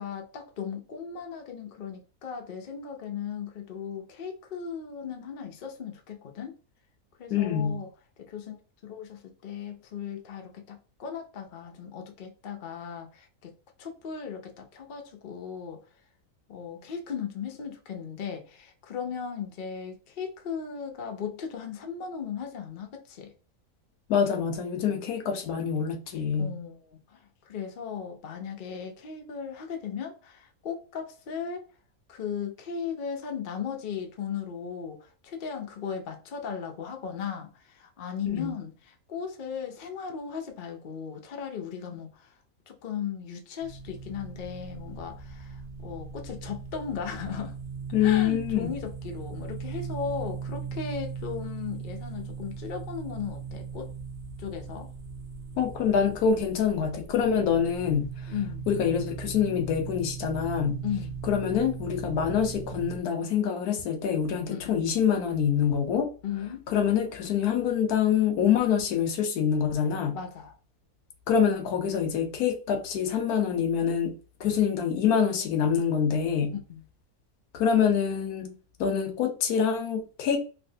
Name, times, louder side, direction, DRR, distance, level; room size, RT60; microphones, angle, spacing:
voice 1, 0.0-6.6 7.2-7.9 8.2-8.6 8.8-13.5 13.8-15.8 16.5-23.3 26.4-26.8 27.1-31.7 32.1-42.3 42.7-47.5 48.0-53.9 54.4-54.9 58.3-58.7 60.8-61.2 64.5-64.8 66.2-66.6 70.1-70.5 76.7-76.8, left 7 dB, 55° left, 0.5 m, -37 dB
voice 2, 7.3-7.8 24.1-26.5 38.3-38.5 47.9-48.7 55.6-58.3 58.7-60.8 61.2-66.1 66.7-70.2 71.3-76.5 77.5-78.5 78.8-80.4, left 7 dB, 80° left, 1.2 m, -26 dB
sound 1, 43.6-63.0, right 6 dB, 65° right, 1.1 m, -39 dB
3.2 x 2.6 x 2.7 m
omnidirectional pair, 1.6 m